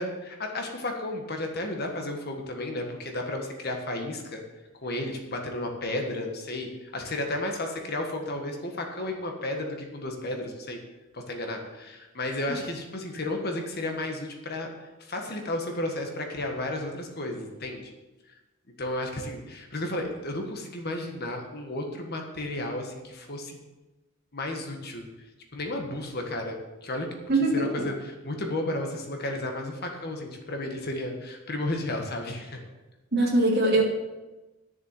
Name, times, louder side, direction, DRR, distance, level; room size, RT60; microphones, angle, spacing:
voice 1, 0.0-4.4 4.8-10.8 11.1-14.7 15.0-17.9 18.8-23.6 24.3-25.1 25.5-27.1 27.5-32.6, left 1 dB, 45° left, 3 dB, 1.6 m, -33 dB
voice 2, 27.3-27.8 33.1-33.8, right 2 dB, 50° right, -4 dB, 2.9 m, -22 dB
11.0 x 7.0 x 7.6 m, 1.1 s
head